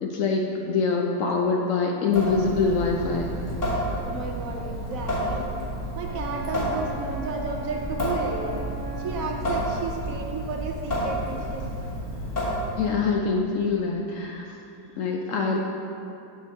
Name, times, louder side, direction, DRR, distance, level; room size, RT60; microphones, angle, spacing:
voice 1, 0.0-3.3 12.8-14.6 15.0-15.6, left 4 dB, 75° left, 0 dB, 0.7 m, -24 dB
Water tap faucet / Sink (filling or washing) / Drip, 2.1-13.0, equal, 45° left, 1.7 m, -30 dB
voice 2, 4.0-5.5 5.9-8.7 9.0-11.7, right 4 dB, 75° right, 2 dB, 0.7 m, -33 dB
Wind instrument woodwind instrument, 6.0-9.6, equal, 35° right, 0.4 m, -39 dB
6.5 x 6.2 x 4.2 m, 2.8 s
omnidirectional pair, 1.9 m